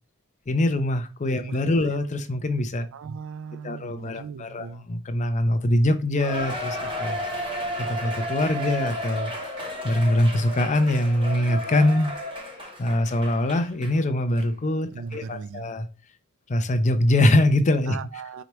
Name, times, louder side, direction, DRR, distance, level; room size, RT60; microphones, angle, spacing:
voice 1, 0.5-2.9 3.6-7.2 7.8-9.3 9.8-12.1 12.8-15.9 16.5-18.0, left 1 dB, 35° left, 0.5 m, -23 dB
voice 2, 1.4-1.9 2.9-4.9 14.9-15.8 17.9-18.4, right 5 dB, 60° right, 0.3 m, -38 dB
Cheering, 6.2-14.0 14.4-14.5 15.1-15.2, equal, 25° right, 0.9 m, -33 dB
4.8 x 3.0 x 3.0 m
head